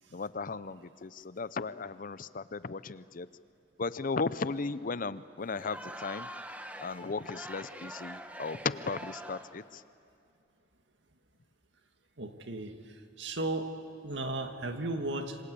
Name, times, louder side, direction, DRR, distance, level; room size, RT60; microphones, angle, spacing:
voice 1, 0.1-3.3 3.8-6.3 6.8-9.8, left 4 dB, 45° left, 16 dB, 0.6 m, -36 dB
Crowd, 5.5-9.7, right 1 dB, 10° right, 1.2 m, -44 dB
voice 2, 12.2-12.7 13.2-13.7 14.0-15.4, right 2 dB, 65° right, 6 dB, 2.1 m, -34 dB
27.0 x 25.5 x 8.5 m, 2.5 s
head